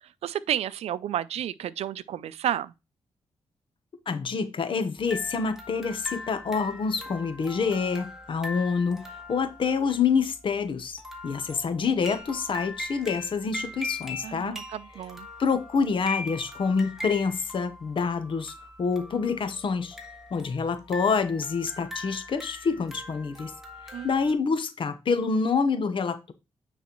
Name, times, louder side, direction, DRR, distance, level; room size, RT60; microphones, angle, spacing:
voice 1, 0.2-2.7 14.2-15.3 23.9-24.1, right 11 dB, 85° right, 0.4 m, -31 dB
voice 2, 4.1-14.6 15.4-20.0 20.3-23.5 24.0-26.3, left 5 dB, 55° left, 0.9 m, -27 dB
sound 1, 5.0-24.3, left 2 dB, 5° right, 1.7 m, -41 dB
9.3 x 4.1 x 3.0 m
cardioid pair, 100°, 10 cm